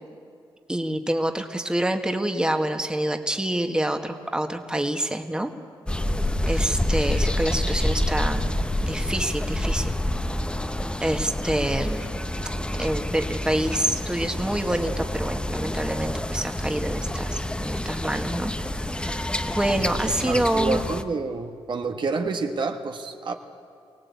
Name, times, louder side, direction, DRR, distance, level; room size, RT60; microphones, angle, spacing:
voice 1, 0.7-5.5 6.5-8.5 8.8-9.9 11.0-12.1 12.8-18.5 19.0-19.1 19.5-20.8, right 1 dB, 10° right, 5 dB, 1.7 m, -27 dB
sound 1, 5.9-21.0, left 1 dB, 10° left, 1.0 m, -28 dB
voice 2, 19.7-23.3, right 4 dB, 55° right, 4 dB, 1.5 m, -29 dB
24.0 x 17.5 x 8.4 m, 2.3 s
cardioid pair, 75°, 10 cm